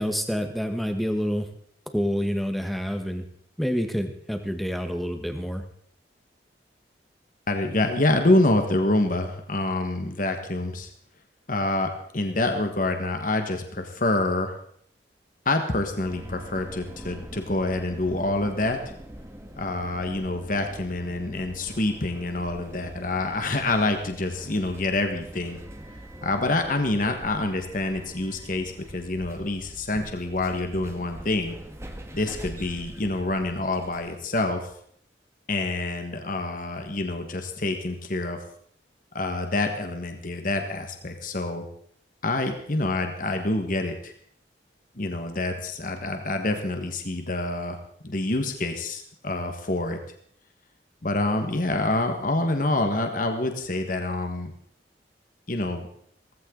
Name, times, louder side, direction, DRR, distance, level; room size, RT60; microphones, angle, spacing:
voice 1, 0.0-1.5 1.9-3.2 3.6-5.6, equal, ahead, 6 dB, 1.3 m, -27 dB
voice 2, 7.5-10.9 11.5-14.5 15.4-18.8 19.5-25.6 26.2-31.6 32.1-34.6 35.5-38.4 39.1-41.7 42.2-44.1 45.0-50.0 51.0-54.5 55.5-55.9, left 2 dB, 50° left, 5 dB, 1.6 m, -26 dB
sound 1, 16.0-34.2, equal, 15° right, 1.5 m, -44 dB
17.0 x 15.5 x 3.9 m, 0.64 s
head